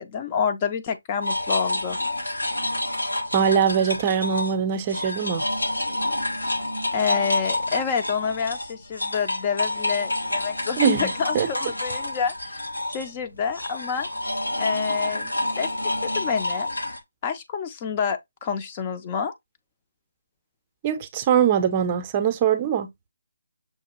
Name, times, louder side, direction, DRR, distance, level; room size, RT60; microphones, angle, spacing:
voice 1, 0.0-2.0 6.4-6.5 6.9-12.6 12.9-14.1 14.6-15.7 16.0-16.7 17.2-19.3, left 6 dB, 25° left, 0.5 m, -28 dB
sound 1, 1.2-4.6 4.9-17.0, left 1 dB, 80° left, 1.3 m, -28 dB
voice 2, 3.3-5.5 10.8-11.5 20.8-22.9, right 8 dB, 25° right, 0.6 m, -22 dB
6.4 x 2.3 x 3.0 m
figure-of-eight pair, 145°, 0 cm